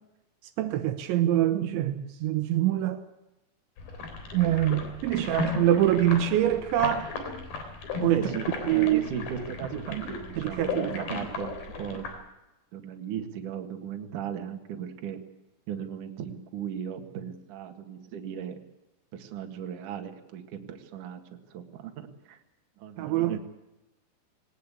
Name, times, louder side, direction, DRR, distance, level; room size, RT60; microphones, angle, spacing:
voice 1, 0.6-3.0 4.3-7.1 8.0-8.2 8.7-9.1 9.9-10.1 10.4-11.1 23.0-23.4, right 12 dB, 75° right, 3.2 m, -25 dB
sound 1, 3.8-12.2, left 4 dB, 50° left, 5.0 m, -35 dB
voice 2, 8.1-12.1 12.7-15.2 15.7-18.6 19.1-22.4 22.8-23.4, right 8 dB, 55° right, 2.8 m, -37 dB
21.0 x 18.5 x 8.4 m
omnidirectional pair, 5.5 m